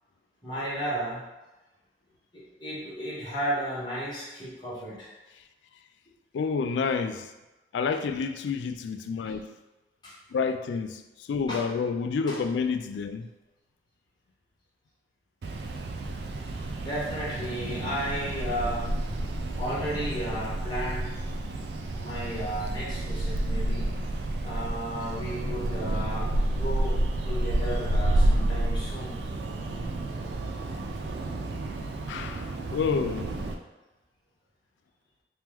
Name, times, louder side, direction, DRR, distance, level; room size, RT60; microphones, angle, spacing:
voice 1, 0.4-1.3 2.3-5.1 10.0-10.1 11.5-11.6 12.3-12.4 16.8-18.9 19.6-21.1 22.0-23.9 24.4-27.0 27.2-29.2, equal, 25° left, 1.2 m, -33 dB
voice 2, 6.3-7.3 7.7-9.4 10.3-11.0 11.3-13.3 32.1-33.4, left 5 dB, 80° left, 0.3 m, -29 dB
sound 1, 15.4-33.5, right 1 dB, 70° right, 0.4 m, -30 dB
3.0 x 2.9 x 3.5 m
head